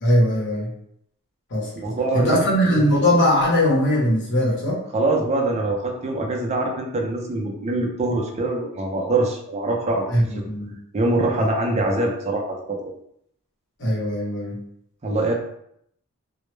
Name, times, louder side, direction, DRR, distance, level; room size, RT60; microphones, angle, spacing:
voice 1, 0.0-0.7 1.5-4.8 10.1-10.7 13.8-14.6, equal, 55° left, -5 dB, 0.9 m, -20 dB
voice 2, 1.8-2.4 4.9-10.4 10.9-12.8 15.0-15.3, right 2 dB, 30° right, 1 dB, 0.4 m, -24 dB
2.1 x 2.0 x 3.1 m, 0.73 s
head